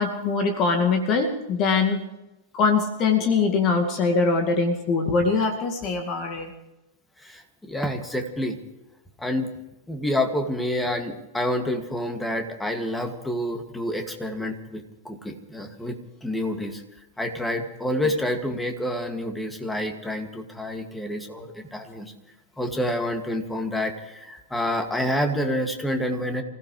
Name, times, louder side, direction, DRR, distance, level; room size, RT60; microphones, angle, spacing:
voice 1, 0.0-2.0 2.5-6.5, left 4 dB, 35° left, 4 dB, 2.1 m, -22 dB
voice 2, 7.2-8.6 9.2-9.5 9.9-16.8 17.2-22.1 22.6-26.4, left 1 dB, 5° left, 5 dB, 2.2 m, -28 dB
27.0 x 16.0 x 3.3 m, 0.99 s
figure-of-eight pair, 95°, 0 cm